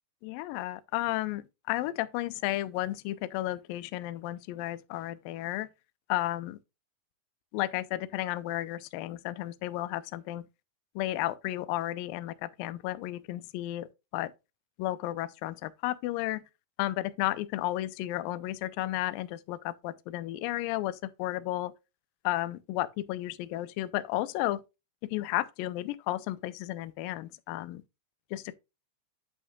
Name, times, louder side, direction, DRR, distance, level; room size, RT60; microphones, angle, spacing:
voice 1, 0.2-5.7 6.1-6.6 7.5-10.5 11.0-14.3 14.8-16.4 16.8-21.7 22.2-24.6 25.0-27.8 28.3-28.5, left 16 dB, 85° left, 2.0 m, -33 dB
8.4 x 8.3 x 2.3 m
omnidirectional pair, 4.7 m